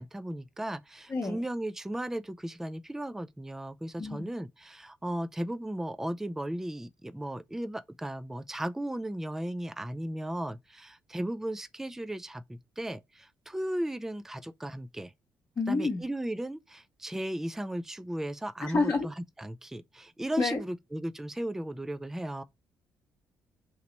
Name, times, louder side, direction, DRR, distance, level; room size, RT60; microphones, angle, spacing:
voice 1, 0.0-15.1 15.7-22.4, right 1 dB, 5° right, 0.3 m, -36 dB
voice 2, 15.6-16.0 18.6-19.1 20.4-20.6, left 3 dB, 40° left, 0.9 m, -28 dB
3.0 x 2.8 x 3.1 m
figure-of-eight pair, 45°, 9 cm